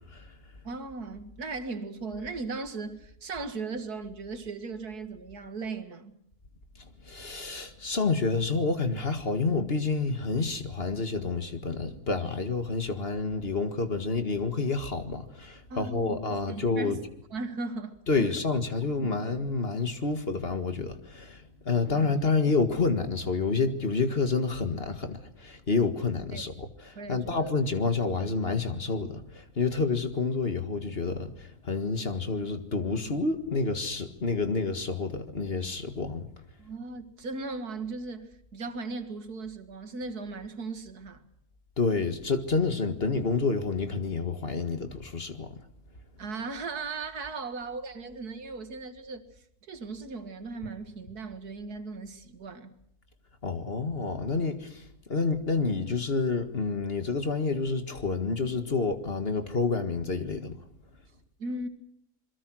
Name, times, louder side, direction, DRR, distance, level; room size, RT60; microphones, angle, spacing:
voice 1, 0.6-6.2 15.7-16.2 16.5-17.0 17.3-18.3 19.0-19.2 21.9-22.1 26.3-26.4 27.0-27.5 36.6-41.2 46.2-49.3 49.6-52.7 61.4-61.7, right 3 dB, 75° right, 2.4 m, -37 dB
voice 2, 7.0-17.0 18.1-36.3 41.8-45.5 53.4-54.8 55.1-60.6, left 4 dB, 40° left, 2.0 m, -29 dB
27.5 x 22.0 x 6.3 m
omnidirectional pair, 1.6 m